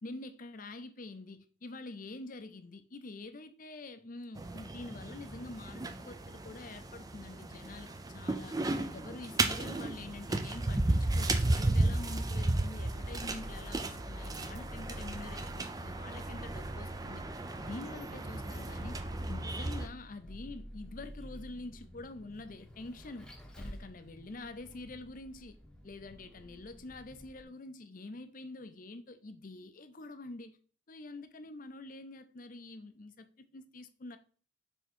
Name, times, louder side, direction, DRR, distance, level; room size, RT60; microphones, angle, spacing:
voice 1, 0.0-8.6 8.9-17.2 17.6-19.0 19.3-23.3 23.6-25.6 25.8-30.6 30.9-34.2, left 2 dB, 45° left, 0.6 m, -46 dB
sound 1, 4.4-19.9, right 2 dB, 20° right, 0.5 m, -34 dB
Vehicle, 10.5-27.4, equal, 5° left, 0.9 m, -50 dB
6.8 x 3.6 x 4.4 m
head